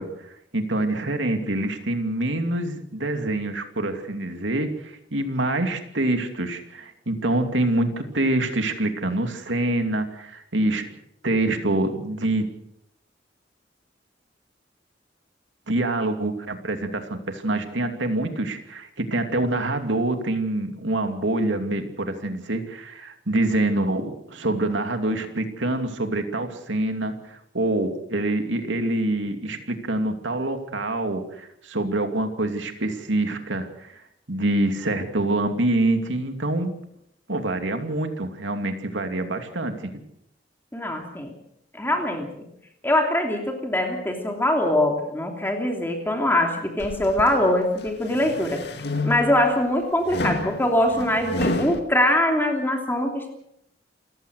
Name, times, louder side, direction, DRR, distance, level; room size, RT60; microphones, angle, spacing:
voice 1, 0.0-10.9 11.2-12.5 15.7-34.0 34.3-36.7 37.3-39.9, right 2 dB, 85° right, 6 dB, 2.7 m, -26 dB
voice 2, 40.7-41.3 41.7-42.3 42.8-48.6 49.0-53.3, left 1 dB, 10° left, 2 dB, 3.0 m, -23 dB
sound 1, 46.8-47.4 47.9-49.5 50.1-51.8, left 2 dB, 60° left, 2.1 m, -29 dB
28.5 x 16.0 x 6.5 m, 0.76 s
head